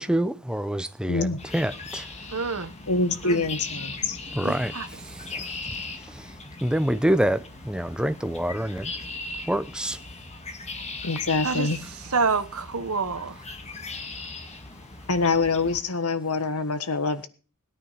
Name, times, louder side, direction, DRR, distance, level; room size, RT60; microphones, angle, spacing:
voice 1, 0.0-1.3 1.5-2.0 4.3-4.7 6.6-8.9 9.5-10.0, right 1 dB, 5° right, 0.8 m, -26 dB
voice 2, 1.1-1.4 2.9-4.2 11.0-11.8 15.1-17.3, left 3 dB, 75° left, 1.5 m, -25 dB
sound 1, 1.4-15.8, left 3 dB, 30° left, 1.8 m, -38 dB
voice 3, 2.3-2.7 3.2-3.4 4.4-4.9 11.4-11.7 12.1-13.4, right 4 dB, 70° right, 1.2 m, -27 dB
17.5 x 9.6 x 5.8 m
head